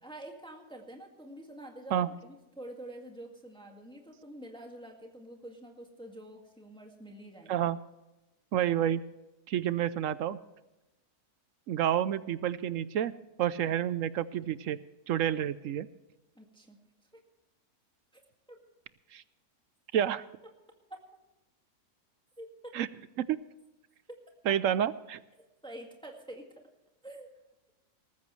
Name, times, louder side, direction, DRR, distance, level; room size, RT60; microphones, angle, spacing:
voice 1, 0.0-7.7 16.3-16.9 18.1-18.2 18.5-18.6 20.9-21.0 22.4-22.5 24.4-24.6 25.4-26.7 27.0-27.3, right 1 dB, 5° left, 2 dB, 1.9 m, -47 dB
voice 2, 8.5-9.0 9.5-10.4 11.7-13.1 13.4-14.8 15.1-15.9 19.1-19.2 19.9-20.2 22.7-22.9 23.3-23.4 24.5-25.2, right 10 dB, 65° right, 16 dB, 0.9 m, -29 dB
19.5 x 14.5 x 3.2 m, 1.0 s
omnidirectional pair, 1.6 m